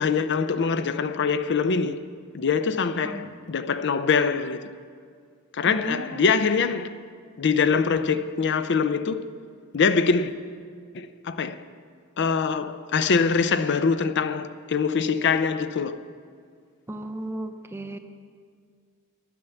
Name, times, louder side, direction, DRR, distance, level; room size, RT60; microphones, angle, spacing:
voice 1, 0.0-2.0 2.3-4.7 5.5-6.9 7.4-9.3 9.7-10.3 10.9-11.6 12.2-16.0, left 5 dB, 55° left, 0.5 m, -24 dB
voice 2, 5.6-6.3 16.9-18.0, right 1 dB, 10° right, 0.6 m, -35 dB
10.0 x 9.8 x 7.0 m
head